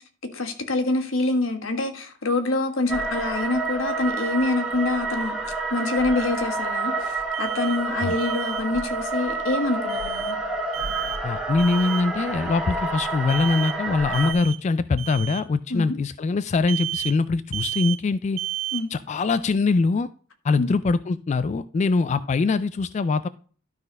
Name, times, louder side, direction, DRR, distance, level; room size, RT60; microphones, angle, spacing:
voice 1, 0.0-5.4 5.7-10.4 10.9-11.0 15.7-16.0 18.7-18.9 20.6-20.7, left 2 dB, 80° left, 6 dB, 1.6 m, -26 dB
sound 1, 2.9-14.3, right 3 dB, 5° right, 1.5 m, -29 dB
Alarm, 7.3-7.8 8.2-8.6 9.9-10.3 10.7-11.2 11.6-12.1 13.3-13.8 14.1-14.6 15.0-15.4 16.7-17.2 17.5-18.0 18.4-18.8, right 14 dB, 85° right, 0.7 m, -32 dB
voice 2, 11.2-18.4 18.9-20.1 20.4-23.3, left 4 dB, 35° left, 14 dB, 0.3 m, -23 dB
12.0 x 4.1 x 5.3 m, 0.42 s
head